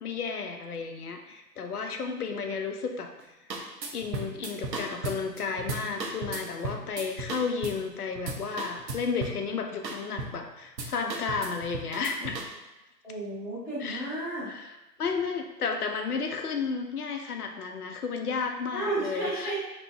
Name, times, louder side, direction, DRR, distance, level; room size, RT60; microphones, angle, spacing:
voice 1, 0.0-3.1 3.9-12.4 13.8-14.0 14.5-14.7 15.0-19.6, left 5 dB, 65° left, 4 dB, 0.5 m, -32 dB
sound 1, 3.2-3.3 3.5-7.9 8.2-9.5 9.8-10.5 10.8-12.5, right 2 dB, 85° right, 0.7 m, -36 dB
voice 2, 13.0-14.5 18.7-19.6, right 2 dB, 20° left, -14 dB, 1.0 m, -33 dB
2.9 x 2.0 x 3.4 m, 1.0 s
figure-of-eight pair, 160°, 50 cm